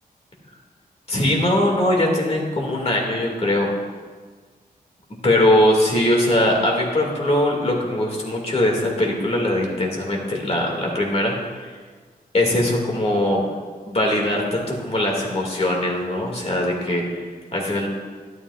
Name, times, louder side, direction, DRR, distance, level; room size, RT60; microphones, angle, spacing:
voice 1, 1.1-3.7 5.2-11.4 11.6-11.7 12.3-13.5 13.9-17.1 17.5-17.9, left 1 dB, 40° left, 0 dB, 2.1 m, -21 dB
12.5 x 12.0 x 2.4 m, 1.5 s
wide cardioid pair, 110°, 16 cm